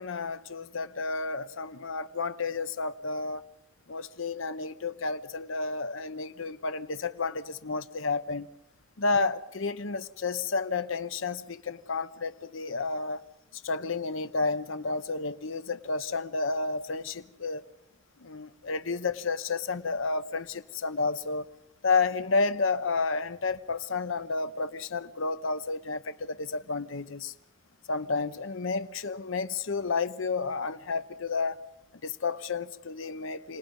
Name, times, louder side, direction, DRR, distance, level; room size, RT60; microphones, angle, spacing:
voice 1, 0.0-3.4 3.9-8.5 9.0-13.2 13.5-17.6 18.2-21.5 21.8-27.3 27.9-31.6 32.0-33.6, left 4 dB, 75° left, 0.9 m, -31 dB
28.5 x 20.0 x 5.4 m
head